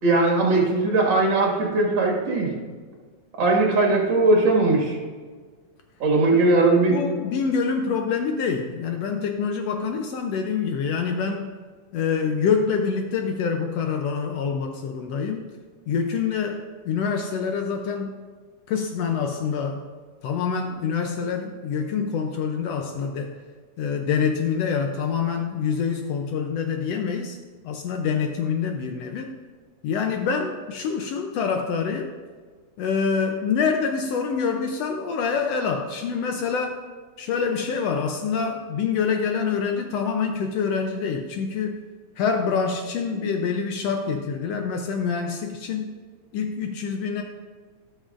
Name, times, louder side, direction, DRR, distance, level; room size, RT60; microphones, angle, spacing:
voice 1, 0.0-2.5 3.4-5.0 6.0-7.0, right 2 dB, 45° right, -1 dB, 2.2 m, -19 dB
voice 2, 6.9-11.5 11.9-15.5 15.9-18.1 18.7-19.8 20.2-23.4 23.8-27.4 27.6-29.4 29.8-32.1 32.8-36.8 37.2-41.8 42.2-46.0 46.3-47.2, left 6 dB, 75° left, 4 dB, 1.5 m, -26 dB
18.5 x 6.3 x 2.5 m, 1.5 s
omnidirectional pair, 3.4 m